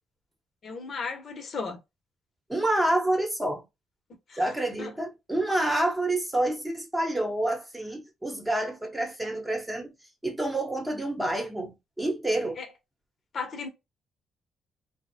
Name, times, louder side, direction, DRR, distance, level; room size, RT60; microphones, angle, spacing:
voice 1, 0.6-1.8 4.3-4.4 4.8-4.9 12.6-12.7 13.3-13.7, left 4 dB, 55° left, 0.8 m, -35 dB
voice 2, 2.5-3.6 4.4-9.9 10.2-12.6, right 1 dB, 10° right, 0.9 m, -28 dB
2.6 x 2.0 x 2.7 m
cardioid pair, 90°, 0 cm